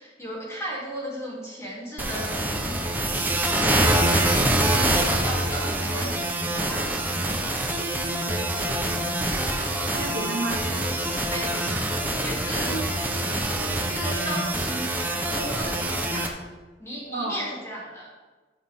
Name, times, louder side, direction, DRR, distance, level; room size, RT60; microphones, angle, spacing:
voice 1, 0.0-6.1 6.4-7.6 10.5-10.8 11.3-12.7 13.2-14.8 15.1-16.3 16.8-18.1, equal, 15° left, -6 dB, 3.0 m, -36 dB
sound 1, 2.0-16.3, right 1 dB, 10° right, 1.0 m, -25 dB
voice 2, 8.2-8.9 9.9-10.7 12.6-12.8 17.1-17.5, right 2 dB, 65° right, -3 dB, 2.2 m, -32 dB
13.0 x 6.5 x 3.7 m, 1.3 s
head